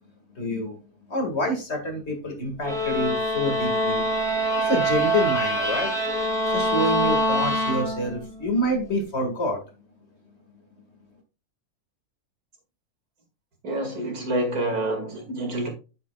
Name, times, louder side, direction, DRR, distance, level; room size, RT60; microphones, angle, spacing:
voice 1, 0.4-0.8 1.1-4.0 4.6-5.9 6.5-9.6, equal, 45° left, 2.2 m, -27 dB
sound 1, 2.6-8.3, right 1 dB, ahead, 2.4 m, -24 dB
voice 2, 13.6-15.7, right 1 dB, 65° right, 2.6 m, -27 dB
8.2 x 8.0 x 2.3 m
omnidirectional pair, 1.7 m